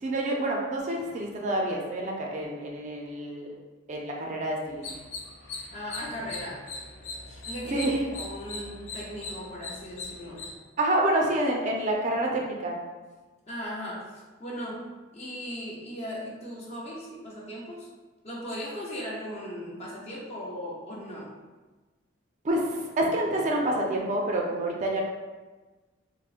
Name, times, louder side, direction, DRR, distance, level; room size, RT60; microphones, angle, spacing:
voice 1, 0.0-3.5 3.9-5.0 7.7-8.0 10.8-12.8 22.4-25.0, right 1 dB, 40° right, -1 dB, 0.4 m, -28 dB
sound 1, 4.7-10.5, left 3 dB, 85° left, 0.4 m, -40 dB
voice 2, 5.7-6.6 7.3-10.5 13.5-17.9 18.2-21.3, equal, 35° left, -4 dB, 0.6 m, -38 dB
3.5 x 2.0 x 2.4 m, 1.3 s
head